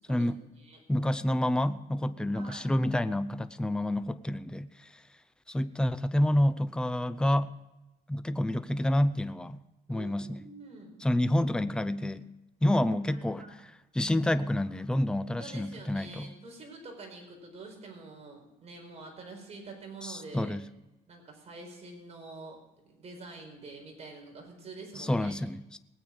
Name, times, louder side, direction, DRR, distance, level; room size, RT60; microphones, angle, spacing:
voice 1, 0.0-0.3 0.6-0.8 2.2-2.7 9.9-10.9 12.8-13.6 15.4-20.6 21.1-22.6 22.9-25.4, right 3 dB, 40° right, 2 dB, 4.7 m, -47 dB
voice 2, 0.9-4.7 5.5-7.5 8.1-9.6 9.9-10.4 11.0-12.3 12.6-16.3 20.0-20.6 25.0-25.8, left 1 dB, 5° left, 13 dB, 0.6 m, -28 dB
20.0 x 8.8 x 5.2 m, 0.96 s
cardioid pair, 110°, 17 cm